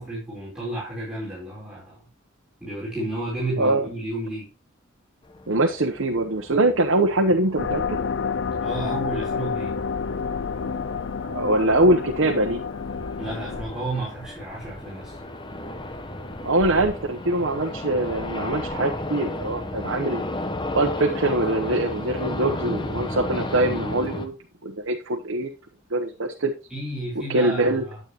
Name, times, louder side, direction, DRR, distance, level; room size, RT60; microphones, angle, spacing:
voice 1, 0.0-2.1 2.6-4.5 8.6-9.8 13.2-15.2 16.7-16.8 26.7-28.0, right 1 dB, 5° right, -8 dB, 4.4 m, -32 dB
voice 2, 3.6-3.9 5.5-8.0 11.3-12.6 16.4-20.2 20.7-24.3 24.6-25.5 25.9-26.5 27.3-27.8, right 2 dB, 90° right, 3 dB, 1.0 m, -23 dB
sound 1, 5.2-24.3, left 1 dB, 25° left, 1.0 m, -34 dB
sound 2, 7.6-13.6, left 5 dB, 65° left, 0.5 m, -29 dB
9.4 x 8.9 x 3.0 m, 0.30 s
head